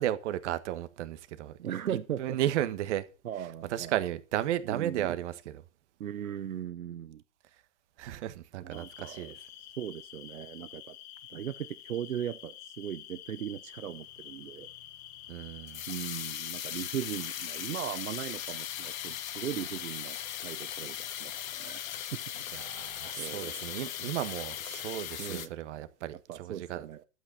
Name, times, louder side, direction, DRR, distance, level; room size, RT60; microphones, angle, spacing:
voice 1, 0.0-1.7 2.2-3.0 3.7-5.6 8.0-9.3 15.3-15.8 22.5-26.9, right 12 dB, 60° right, 1.5 m, -34 dB
voice 2, 1.6-2.4 3.2-3.9 4.7-5.1 6.0-7.2 8.6-9.4 9.8-11.0 11.3-14.7 15.9-22.6 23.2-23.7 25.2-25.5 26.1-27.0, right 10 dB, 90° right, 0.8 m, -38 dB
sound 1, 8.7-25.1, left 12 dB, 50° left, 1.4 m, -48 dB
sound 2, 13.8-25.5, left 11 dB, 75° left, 1.1 m, -39 dB
12.0 x 8.4 x 5.6 m
hypercardioid pair, 115°, 41 cm